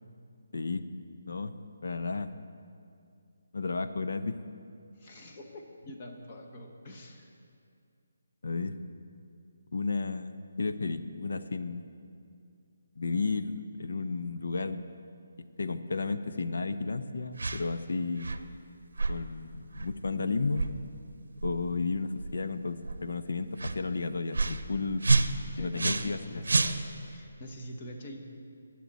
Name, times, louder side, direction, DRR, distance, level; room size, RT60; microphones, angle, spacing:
voice 1, 0.5-0.8 1.3-1.5 1.8-2.3 3.5-4.4 8.4-8.7 9.7-11.9 13.0-14.9 15.6-18.3 19.1-20.6 21.4-25.0 25.6-26.4, left 4 dB, 65° left, 10 dB, 0.7 m, -33 dB
voice 2, 5.0-7.3 25.5-28.2, left 1 dB, 25° left, 2 dB, 1.1 m, -45 dB
sound 1, 17.4-17.6 18.2-18.5 19.0-19.2 19.7-19.9 20.5-20.7 21.4-21.5 22.2-22.4 22.8-23.0 23.6-23.8 24.3-24.6 25.0-26.2 26.4-27.1, right 3 dB, 85° right, 0.7 m, -28 dB
21.5 x 7.6 x 4.1 m, 2.4 s
hypercardioid pair, 175°, 0 cm